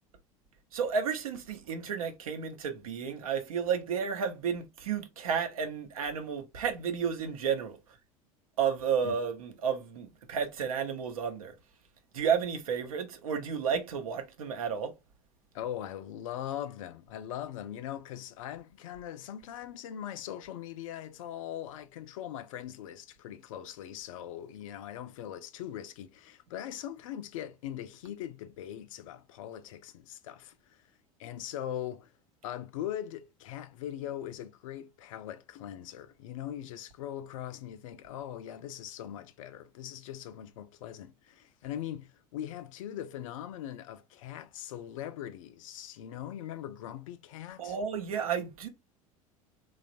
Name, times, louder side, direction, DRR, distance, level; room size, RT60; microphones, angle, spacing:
voice 1, 0.7-7.8 8.6-11.5 12.1-14.9 47.6-48.7, right 7 dB, 70° right, 0.7 m, -32 dB
voice 2, 15.5-30.8 31.2-32.1 32.4-47.8, left 11 dB, 65° left, 0.4 m, -41 dB
3.1 x 2.3 x 2.5 m
figure-of-eight pair, 75°, 19 cm